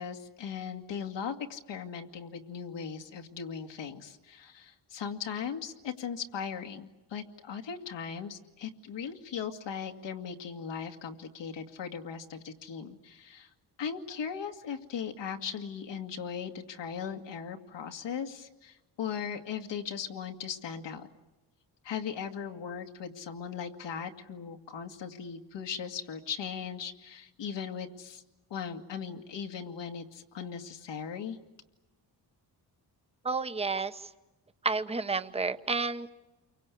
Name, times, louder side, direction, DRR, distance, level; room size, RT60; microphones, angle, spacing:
voice 1, 0.0-13.5 13.8-21.1 21.8-28.2 28.5-31.4, left 7 dB, 85° left, 3 dB, 2.2 m, -38 dB
voice 2, 33.2-34.1 34.6-36.1, right 4 dB, 15° right, 10 dB, 1.0 m, -31 dB
29.0 x 24.0 x 8.5 m, 1.0 s
wide cardioid pair, 160°, 42 cm